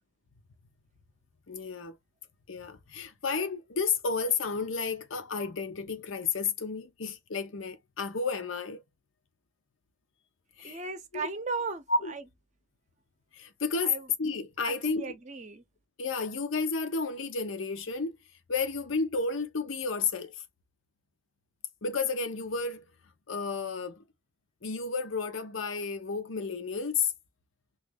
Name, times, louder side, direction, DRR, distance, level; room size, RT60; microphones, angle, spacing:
voice 1, 1.5-2.0 2.5-8.8 10.6-10.8 11.1-11.3 11.9-12.1 13.3-15.2 16.0-18.2 18.5-20.4 21.8-22.8 23.3-24.0 24.6-27.1, left 4 dB, 80° left, 0.7 m, -31 dB
voice 2, 10.6-12.2 13.8-14.1 14.6-15.6, right 4 dB, 35° right, 0.6 m, -36 dB
3.1 x 2.4 x 3.5 m
head